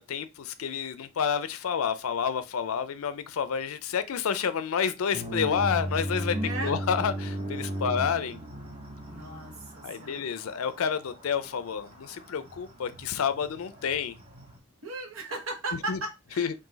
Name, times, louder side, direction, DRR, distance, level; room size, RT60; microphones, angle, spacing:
voice 1, 0.0-6.3 6.6-8.4 9.8-14.1 15.9-16.0 16.4-16.5, left 7 dB, 85° left, 0.4 m, -29 dB
sound 1, 5.1-14.6, equal, 30° right, 0.9 m, -37 dB
voice 2, 6.3-6.8 9.0-10.2 14.8-16.5, right 2 dB, 75° right, 1.2 m, -36 dB
3.8 x 2.6 x 3.8 m
head